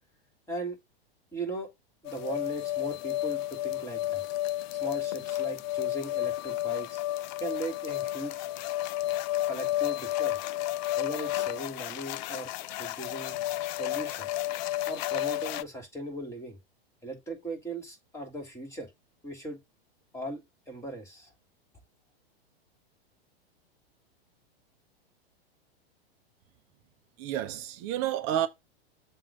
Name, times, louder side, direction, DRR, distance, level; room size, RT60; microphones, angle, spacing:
voice 1, 0.5-0.8 1.3-1.7 2.0-4.2 4.8-7.0 7.4-8.4 9.5-10.4 11.0-13.4 13.8-14.3 14.9-16.6 17.0-18.9 19.2-19.6 20.1-21.3, right 1 dB, 10° left, 3.0 m, -38 dB
sound 1, 2.0-15.6, left 15 dB, 45° left, 0.5 m, -32 dB
voice 2, 27.2-28.5, right 11 dB, 40° right, 0.8 m, -30 dB
7.4 x 2.7 x 5.9 m
hypercardioid pair, 115°, 31 cm